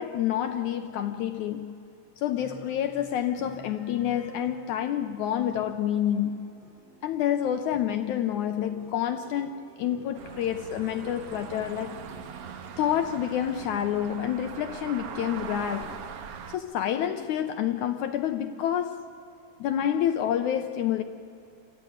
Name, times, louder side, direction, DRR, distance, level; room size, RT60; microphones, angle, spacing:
voice 1, 0.0-1.8 2.2-6.5 7.0-12.0 12.8-16.0 16.5-19.1 19.6-21.0, left 10 dB, 75° left, 1.8 m, -28 dB
sound 1, 2.4-13.9, right 1 dB, 45° right, 4.5 m, -52 dB
sound 2, 10.1-16.6, right 7 dB, 70° right, 1.4 m, -41 dB
28.5 x 15.0 x 9.3 m
omnidirectional pair, 4.0 m